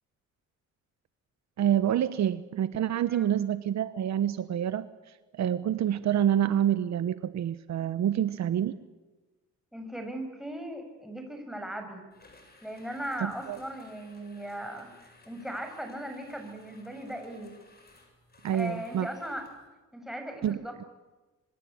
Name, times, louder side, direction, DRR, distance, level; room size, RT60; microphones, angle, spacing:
voice 1, 1.6-4.9 5.3-8.8 13.2-13.6 18.4-19.1 20.4-20.6, right 10 dB, 65° right, 13 dB, 1.1 m, -27 dB
voice 2, 9.7-12.0 12.6-17.5 18.5-19.5 19.9-20.9, right 1 dB, ahead, 4 dB, 7.2 m, -38 dB
sound 1, 12.1-19.7, left 2 dB, 30° left, 7.5 m, -58 dB
26.0 x 25.5 x 8.9 m, 1.2 s
cardioid pair, 90°, 30 cm